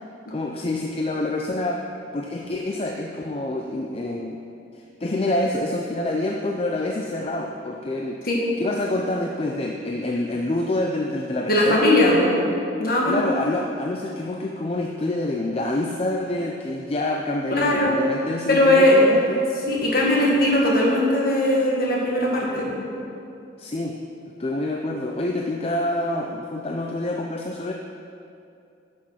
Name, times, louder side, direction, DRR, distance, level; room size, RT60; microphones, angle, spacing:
voice 1, 0.3-1.8 2.1-4.4 4.7-8.2 8.6-11.9 13.0-19.5 23.6-24.0 24.4-27.7, left 2 dB, 30° left, 1 dB, 0.4 m, -27 dB
voice 2, 11.5-12.3 12.8-13.1 17.5-18.0 18.5-19.0 19.7-22.7, left 1 dB, 50° left, -3 dB, 1.8 m, -19 dB
10.0 x 6.3 x 5.8 m, 2.6 s
head